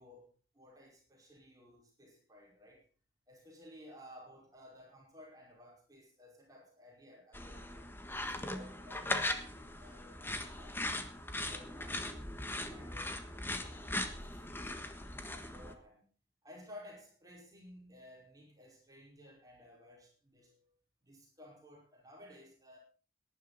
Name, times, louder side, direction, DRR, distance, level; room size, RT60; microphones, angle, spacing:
voice 1, 0.0-2.8 3.3-7.8 8.2-10.9 11.3-12.4 12.7-14.8 15.2-16.1 16.4-20.8 21.0-22.8, left 1 dB, 20° right, 5.1 m, -56 dB
sound 1, 7.3-15.7, left 1 dB, 10° left, 1.4 m, -39 dB
18.5 x 11.0 x 4.2 m
head